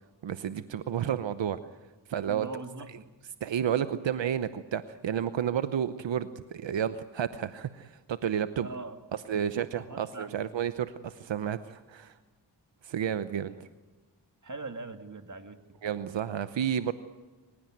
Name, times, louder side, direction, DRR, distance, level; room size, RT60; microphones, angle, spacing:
voice 1, 0.2-1.6 2.1-2.5 3.4-8.7 9.3-12.2 12.8-13.5 15.8-16.9, right 9 dB, 80° right, 12 dB, 0.9 m, -31 dB
voice 2, 2.3-3.1 8.6-9.0 9.3-10.4 13.4-13.7 14.4-15.6, right 3 dB, 40° right, 7 dB, 2.6 m, -42 dB
27.0 x 16.5 x 9.3 m, 1.3 s
cardioid pair, 50°, 43 cm